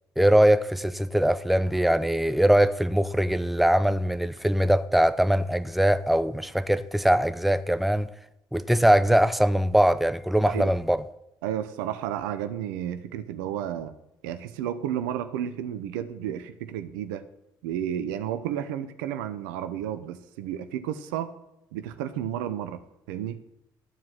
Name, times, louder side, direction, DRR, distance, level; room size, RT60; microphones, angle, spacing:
voice 1, 0.2-8.1 8.5-11.0, right 1 dB, ahead, 0.6 m, -22 dB
voice 2, 11.4-13.9 14.2-17.2 17.6-21.3 21.7-22.8 23.1-23.4, right 10 dB, 80° right, 0.7 m, -32 dB
13.0 x 4.8 x 7.5 m
hypercardioid pair, 50°, 10 cm